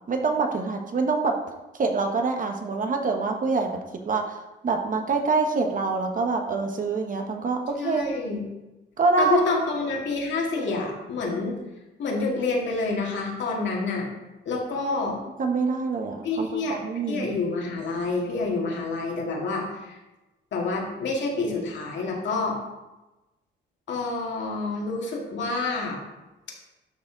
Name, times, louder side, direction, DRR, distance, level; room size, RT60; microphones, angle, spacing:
voice 1, 0.1-1.4 1.8-3.8 4.1-4.4 4.6-8.1 9.0-9.7 15.4-17.3, right 4 dB, 40° right, 4 dB, 1.2 m, -25 dB
voice 2, 7.8-8.4 9.2-11.6 12.0-14.1 14.5-15.2 16.2-16.8 17.1-20.0 20.5-22.6 23.9-26.0, left 3 dB, 65° left, -1 dB, 2.2 m, -28 dB
12.0 x 4.2 x 4.0 m, 1.0 s
cardioid pair, 90°, 20 cm